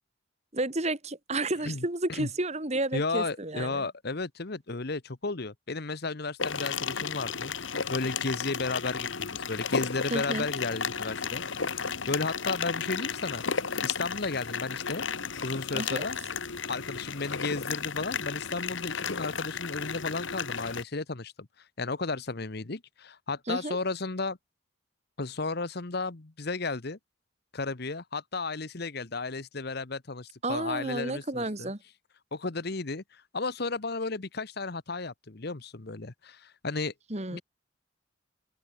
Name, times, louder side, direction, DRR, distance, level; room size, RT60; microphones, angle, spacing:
voice 1, 0.5-3.9 10.1-10.5 15.7-16.1 23.5-23.8 30.4-31.8 37.1-37.4, right 2 dB, 35° right, 2.4 m, -31 dB
voice 2, 1.6-2.3 2.9-7.5 7.9-11.4 11.8-13.4 13.8-15.0 15.4-16.2 16.7-21.5 21.8-24.4 25.2-27.0 27.5-31.7 32.3-36.9 37.3-37.4, left 3 dB, 55° left, 1.1 m, -33 dB
sound 1, 6.4-20.8, left 6 dB, 75° left, 1.4 m, -33 dB
head